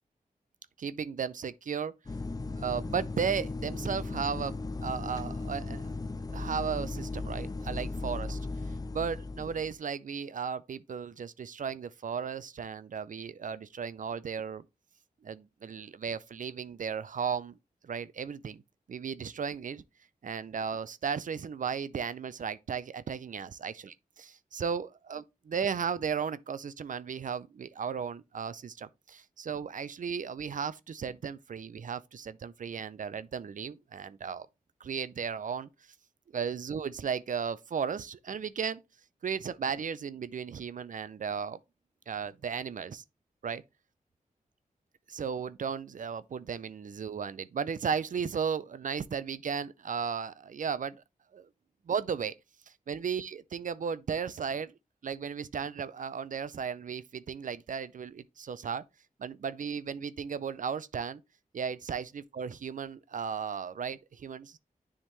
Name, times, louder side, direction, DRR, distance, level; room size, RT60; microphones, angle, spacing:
voice 1, 0.8-1.9 2.6-6.0 6.3-8.4 8.7-14.6 15.2-17.6 17.8-18.6 18.9-19.8 20.2-34.5 34.8-35.7 36.3-38.8 39.2-41.6 42.1-43.0 43.4-43.6 45.1-51.0 51.3-51.5 51.9-52.3 52.7-54.7 55.0-58.8 59.2-61.2 61.5-64.6, right 6 dB, 65° right, 0.4 m, -35 dB
sound 1, 2.1-9.7, left 3 dB, 25° left, 0.4 m, -37 dB
9.9 x 3.6 x 3.1 m
wide cardioid pair, 85°, 15 cm